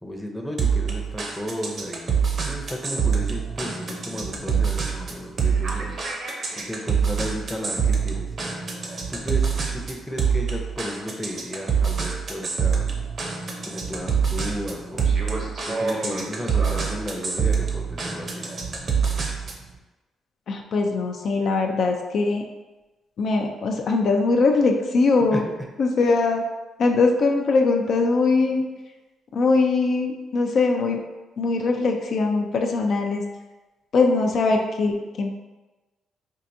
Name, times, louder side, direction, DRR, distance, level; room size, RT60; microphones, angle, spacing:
voice 1, 0.0-6.0 6.6-8.5 9.1-9.5 9.7-12.9 13.6-15.1 15.7-18.5 25.2-25.5, equal, ahead, 0 dB, 0.6 m, -34 dB
sound 1, 0.6-19.7, right 6 dB, 50° right, 0.7 m, -25 dB
voice 2, 20.5-22.4 23.2-25.4 25.8-26.4 26.8-28.6 29.3-31.0 31.4-33.2 33.9-35.3, left 3 dB, 60° left, 2 dB, 0.4 m, -21 dB
4.5 x 2.5 x 2.7 m, 1.1 s
cardioid pair, 90°, 0 cm